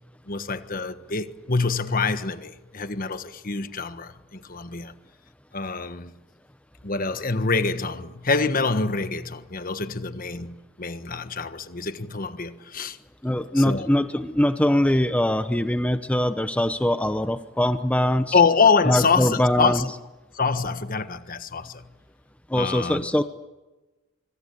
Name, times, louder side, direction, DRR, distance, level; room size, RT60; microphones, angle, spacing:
voice 1, 0.3-4.9 5.5-6.1 6.8-13.0 13.5-13.9 18.3-19.9 20.3-21.8 22.5-23.1, left 4 dB, 40° left, 1.4 m, -25 dB
voice 2, 13.2-18.4 18.9-19.9 22.5-23.2, left 1 dB, 5° left, 0.8 m, -22 dB
25.5 x 25.0 x 8.5 m
head